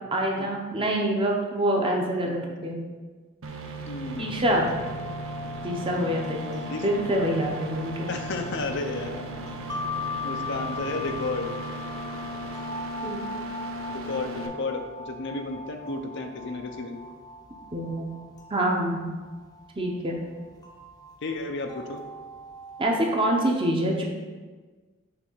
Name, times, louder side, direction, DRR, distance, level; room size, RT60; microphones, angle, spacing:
voice 1, 0.1-2.8 4.2-4.7 5.6-8.1 13.0-13.2 17.7-18.1 18.5-19.2 19.8-20.2 22.8-24.0, right 1 dB, 25° right, 0 dB, 0.8 m, -26 dB
sound 1, 3.4-14.5, right 2 dB, 80° right, 0.7 m, -37 dB
voice 2, 3.9-4.3 6.7-6.8 8.1-9.3 10.2-11.5 13.9-17.0 21.2-22.0, left 3 dB, 60° left, 5 dB, 0.6 m, -32 dB
sound 2, 4.5-22.8, left 3 dB, 20° left, 0.7 m, -40 dB
6.0 x 3.4 x 5.5 m, 1.4 s
head